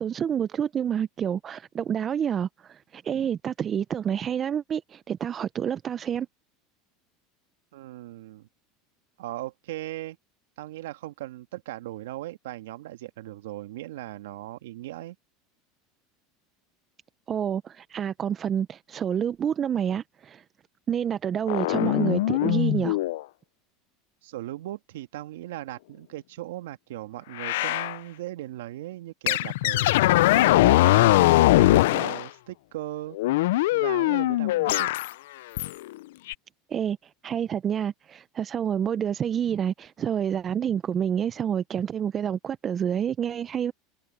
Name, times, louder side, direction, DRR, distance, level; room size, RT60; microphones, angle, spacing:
voice 1, 0.0-6.3 17.3-20.4 20.9-23.0 36.7-37.0 37.2-43.7, right 8 dB, 35° right, 0.7 m, -28 dB
voice 2, 7.7-8.5 9.2-10.2 10.6-15.1 24.2-30.0 30.3-33.2 33.7-34.9, right 15 dB, 80° right, 1.7 m, -38 dB
sound 1, 21.5-23.2 27.4-28.0 29.3-32.3 33.1-35.1 35.6-35.9 36.3-36.4, left 17 dB, 75° left, 0.6 m, -21 dB
hypercardioid pair, 95°, 0 cm